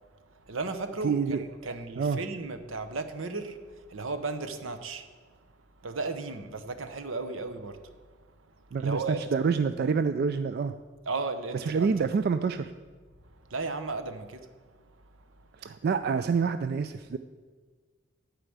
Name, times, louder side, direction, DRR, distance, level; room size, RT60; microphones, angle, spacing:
voice 1, 0.5-5.1 5.8-7.9 8.8-9.2 11.1-11.9 13.5-14.5, right 3 dB, 80° right, 0.8 m, -35 dB
voice 2, 1.0-2.2 8.7-10.7 11.6-12.7 15.6-17.2, right 5 dB, 50° right, 0.3 m, -27 dB
11.5 x 4.9 x 7.9 m
head